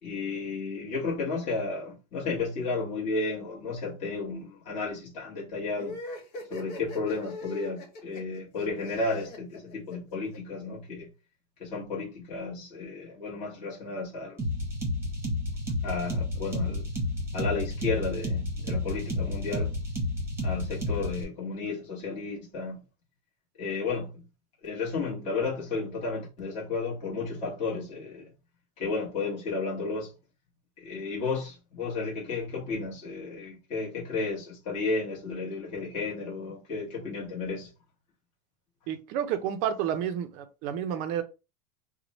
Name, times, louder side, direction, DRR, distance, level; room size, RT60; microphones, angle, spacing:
voice 1, 0.0-6.0 6.5-11.1 11.6-14.4 15.8-16.8 17.3-19.7 20.4-22.8 23.6-24.2 24.6-28.3 28.8-30.1 30.8-37.7, left 3 dB, 35° left, 1.1 m, -33 dB
sound 1, 5.7-10.4, left 2 dB, 65° left, 1.3 m, -41 dB
sound 2, 14.4-21.2, left 1 dB, 10° right, 0.9 m, -31 dB
voice 2, 38.9-41.2, right 9 dB, 40° right, 0.5 m, -30 dB
3.0 x 2.1 x 4.0 m
supercardioid pair, 175°, 21 cm